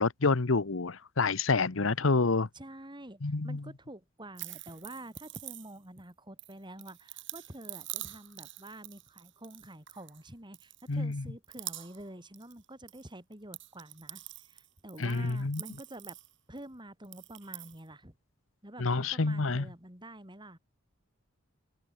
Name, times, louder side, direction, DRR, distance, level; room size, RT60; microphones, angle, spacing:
voice 1, 0.0-2.5 3.2-3.6 10.9-11.2 15.0-15.6 18.8-19.7, left 3 dB, 80° left, 1.0 m, -28 dB
voice 2, 2.5-16.2 16.5-18.2 18.6-20.6, right 1 dB, 25° right, 6.3 m, -48 dB
sound 1, 4.3-6.0 6.4-10.2 10.5-11.1 11.4-12.1 12.3-13.0 13.3-16.6 17.0-17.8, right 16 dB, 65° right, 7.5 m, -45 dB
open air
head